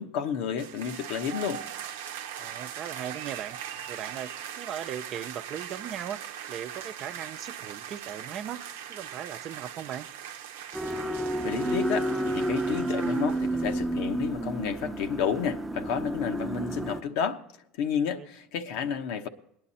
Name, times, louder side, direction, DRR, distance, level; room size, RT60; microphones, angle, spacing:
voice 1, 0.0-1.6 11.4-17.4 17.8-19.3, left 7 dB, 70° left, 6 dB, 1.1 m, -31 dB
sound 1, 0.6-13.8, right 9 dB, 85° right, 0.8 m, -40 dB
voice 2, 2.4-3.6 3.9-6.2 6.5-8.6 8.9-10.1 18.1-18.3, right 9 dB, 50° right, 9 dB, 0.7 m, -38 dB
sound 2, 10.7-17.0, right 1 dB, 10° right, 0.8 m, -30 dB
18.5 x 10.5 x 4.3 m, 0.75 s
hypercardioid pair, 90°, 0 cm